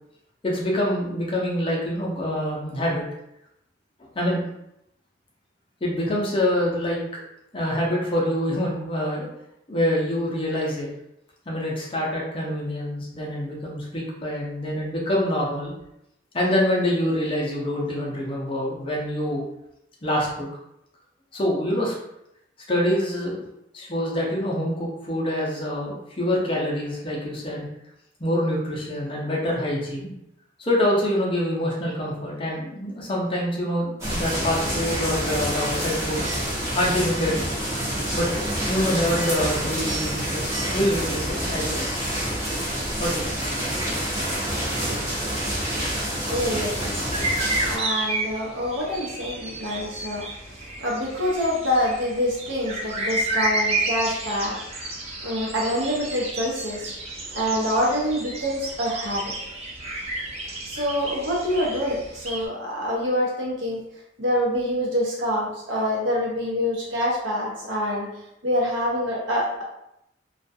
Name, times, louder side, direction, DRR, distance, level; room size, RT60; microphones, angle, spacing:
voice 1, 0.4-3.0 4.2-4.4 5.8-7.0 7.5-9.3 9.7-10.9 11.5-15.7 16.3-19.4 20.0-20.5 21.3-21.9 22.7-23.4 23.7-27.7 28.2-30.1 30.6-36.2 36.7-37.3 38.1-42.0 43.0-43.4, left 1 dB, 25° left, -4 dB, 0.5 m, -25 dB
sound 1, 34.0-47.8, equal, 15° right, 0.8 m, -27 dB
voice 2, 46.2-46.9 47.6-50.3 50.8-54.6 55.2-56.9 57.3-59.3 60.6-63.8 64.2-68.1 68.4-69.6, equal, 75° right, -4 dB, 0.9 m, -26 dB
sound 2, 47.1-62.5, right 2 dB, 30° right, 0.4 m, -31 dB
2.4 x 2.2 x 2.6 m, 0.81 s
head